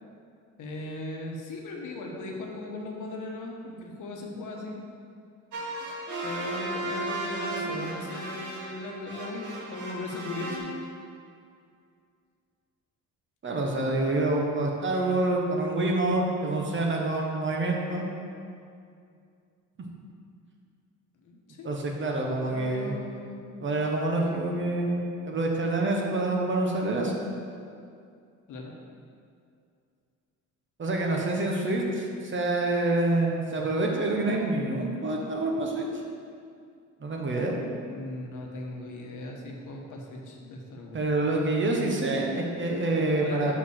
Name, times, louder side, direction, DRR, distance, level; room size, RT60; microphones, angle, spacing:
voice 1, 0.6-4.8 6.2-10.7 21.2-21.7 22.4-23.5 28.5-28.7 37.9-41.0 43.1-43.5, left 2 dB, 75° left, 0 dB, 1.3 m, -38 dB
sound 1, 5.5-10.6, right 2 dB, 70° right, 2.1 m, -35 dB
voice 2, 13.4-18.1 21.6-23.0 23.6-27.1 30.8-35.8 37.0-37.5 40.9-43.5, right 2 dB, 40° right, 0 dB, 1.2 m, -27 dB
5.9 x 5.6 x 6.4 m, 2.4 s
cardioid pair, 115°, 31 cm